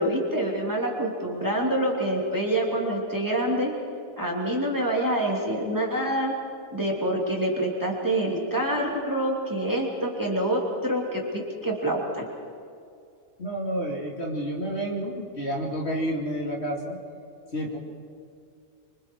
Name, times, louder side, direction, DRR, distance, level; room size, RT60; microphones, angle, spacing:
voice 1, 0.0-3.7 4.2-6.3 6.7-12.2, right 1 dB, 15° right, -2 dB, 3.1 m, -26 dB
voice 2, 13.4-17.0 17.5-17.8, equal, 50° left, -1 dB, 2.9 m, -30 dB
27.0 x 25.0 x 4.7 m, 2.4 s
omnidirectional pair, 1.5 m